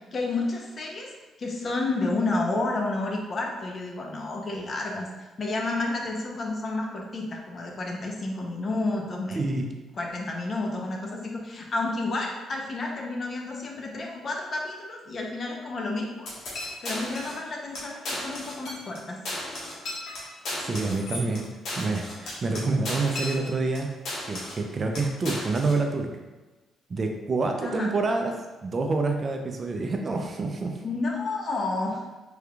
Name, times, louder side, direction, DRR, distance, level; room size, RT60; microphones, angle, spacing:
voice 1, 0.1-1.1 1.4-5.1 5.4-9.6 10.0-16.3 16.8-19.2 27.6-27.9 30.8-32.0, left 2 dB, 45° left, 0 dB, 0.7 m, -30 dB
voice 2, 9.3-9.7 20.6-21.4 21.8-23.9 24.3-26.1 26.9-28.3 28.6-30.8, right 3 dB, 40° right, 3 dB, 0.4 m, -27 dB
sound 1, 16.3-17.4 17.7-17.8 18.0-19.0 19.2-23.8 24.1-24.6 24.9-25.8, left 1 dB, 70° left, 1.3 m, -35 dB
3.4 x 3.4 x 2.3 m, 1.2 s
cardioid pair, 90°, 0 cm